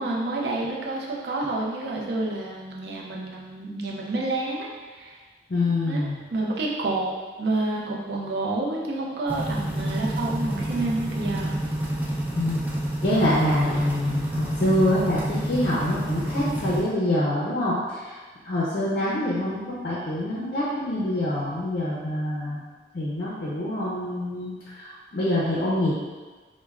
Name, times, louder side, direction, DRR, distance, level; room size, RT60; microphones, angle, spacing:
voice 1, 0.0-5.2 5.9-11.6, right 2 dB, 70° right, -3 dB, 0.5 m, -29 dB
voice 2, 5.5-6.2 12.3-12.6 13.0-18.2 18.4-22.6 22.9-25.9, left 1 dB, 55° left, -7 dB, 0.5 m, -25 dB
sound 1, 9.3-16.8, right 1 dB, 10° right, 0.4 m, -28 dB
3.2 x 2.1 x 2.3 m, 1.4 s
head